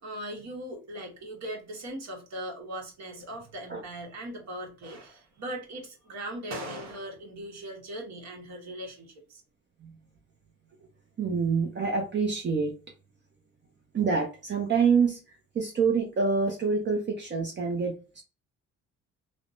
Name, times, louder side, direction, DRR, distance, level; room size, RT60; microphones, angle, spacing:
voice 1, 0.0-9.4, right 1 dB, 60° right, 1.2 m, -39 dB
voice 2, 11.2-12.7 13.9-15.2 15.5-18.2, right 5 dB, 35° right, 0.6 m, -26 dB
3.3 x 2.1 x 2.6 m
cardioid pair, 90°, 30 cm